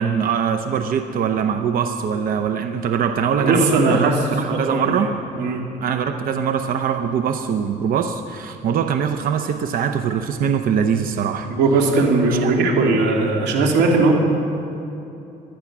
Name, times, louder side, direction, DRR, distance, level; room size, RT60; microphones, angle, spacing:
voice 1, 0.0-5.1 5.8-11.5 12.3-12.5, right 7 dB, 55° right, 7 dB, 0.8 m, -22 dB
voice 2, 3.4-4.1 4.5-5.0 5.3-5.6 11.5-14.1, right 3 dB, 80° right, 1 dB, 2.8 m, -18 dB
19.0 x 12.0 x 6.1 m, 2.8 s
cardioid pair, 110°, 17 cm